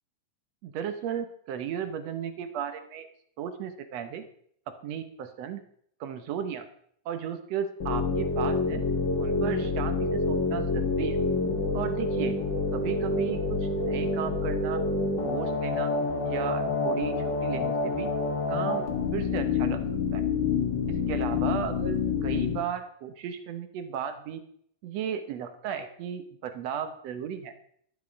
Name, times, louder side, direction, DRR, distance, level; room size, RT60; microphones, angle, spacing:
voice 1, 0.6-3.1 3.4-4.2 4.8-5.6 6.0-6.6 7.0-8.8 9.2-11.2 11.7-12.4 12.7-14.8 15.2-15.9 16.2-17.1 17.4-18.1 18.5-18.8 19.1-19.8 20.1-20.2 21.1-24.4 24.8-27.5, right 8 dB, 70° right, 9 dB, 1.7 m, -35 dB
sound 1, 7.8-22.6, left 3 dB, 40° left, 2.0 m, -27 dB
12.5 x 10.0 x 5.1 m, 0.65 s
omnidirectional pair, 3.9 m